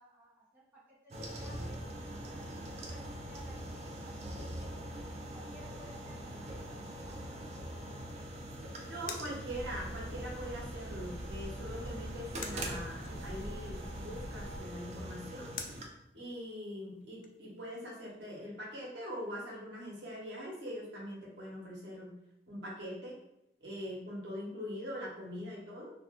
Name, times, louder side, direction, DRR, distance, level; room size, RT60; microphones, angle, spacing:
voice 1, 0.0-4.7 5.2-7.5, right 1 dB, 10° right, -8 dB, 0.7 m, -57 dB
sound 1, 1.1-15.9, right 1 dB, 35° right, 0.4 m, -43 dB
sound 2, 7.7-17.8, left 5 dB, 45° left, 0.3 m, -52 dB
voice 2, 8.8-15.5 16.1-22.1 22.5-23.2 23.6-25.9, equal, 90° right, -3 dB, 1.0 m, -42 dB
sound 3, 9.5-14.6, equal, 55° right, 0.8 m, -44 dB
2.4 x 2.2 x 3.5 m, 0.82 s
head